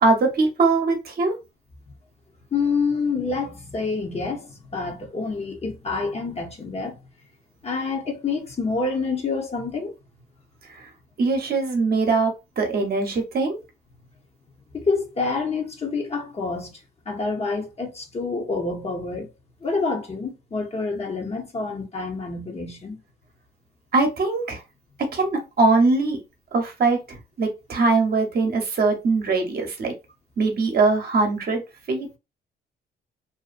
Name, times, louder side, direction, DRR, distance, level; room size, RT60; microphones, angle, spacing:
voice 1, 0.0-1.4 10.8-10.9 11.2-13.6 23.9-24.6 25.1-26.2 26.5-29.9 30.4-31.6 31.9-32.1, right 3 dB, 50° right, 0.8 m, -21 dB
voice 2, 2.5-7.0 7.6-9.9 14.7-19.3 19.6-23.0, left 4 dB, 30° left, 0.7 m, -27 dB
2.6 x 2.2 x 2.4 m
cardioid pair, 90°, 20 cm